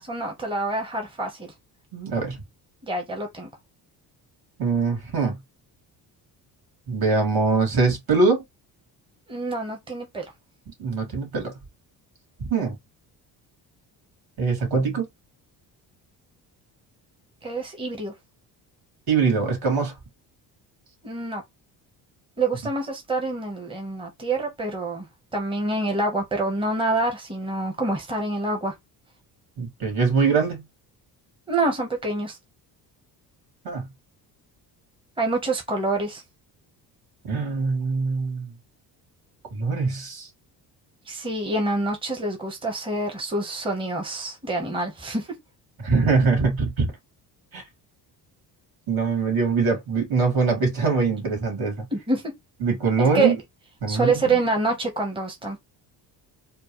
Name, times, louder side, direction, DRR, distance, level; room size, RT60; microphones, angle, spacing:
voice 1, 0.0-1.5 2.8-3.5 9.3-10.3 17.4-18.1 21.0-21.4 22.4-25.1 25.3-28.7 31.5-32.4 35.2-36.2 41.1-45.3 51.9-52.3 53.1-53.4 53.9-55.6, right 2 dB, 10° right, 1.0 m, -26 dB
voice 2, 1.9-2.4 4.6-5.4 6.9-8.4 10.8-11.5 12.5-12.7 14.4-15.1 19.1-19.9 29.6-30.6 33.6-33.9 37.3-38.5 39.5-40.3 45.8-46.9 47.5-47.6 48.9-51.8 52.6-53.3 53.8-54.4, right 4 dB, 60° right, 2.4 m, -23 dB
4.4 x 2.1 x 3.0 m
cardioid pair, 95°, 41 cm